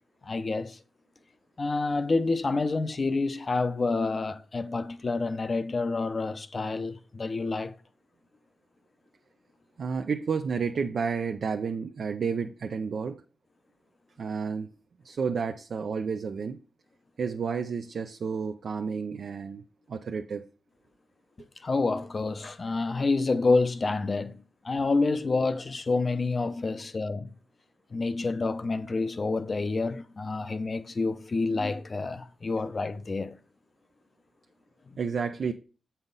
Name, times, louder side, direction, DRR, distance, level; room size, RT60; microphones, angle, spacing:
voice 1, 0.2-0.8 1.6-7.7 21.6-27.3 27.9-33.4, left 3 dB, 30° left, 0.7 m, -28 dB
voice 2, 9.8-13.2 14.2-14.7 15.0-16.6 17.2-19.6 19.9-20.4 35.0-35.5, right 5 dB, 55° right, 0.5 m, -31 dB
8.1 x 5.6 x 4.0 m
wide cardioid pair, 145°, 0 cm